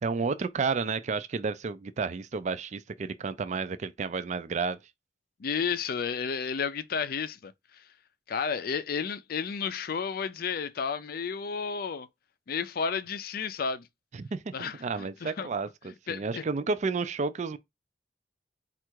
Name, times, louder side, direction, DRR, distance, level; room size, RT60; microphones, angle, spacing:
voice 1, 0.0-4.8 14.1-17.6, right 4 dB, 40° right, 0.4 m, -31 dB
voice 2, 5.4-7.8 8.3-12.1 12.5-13.9 14.5-15.5 16.1-16.5, left 6 dB, 55° left, 0.5 m, -32 dB
4.5 x 2.5 x 4.5 m
head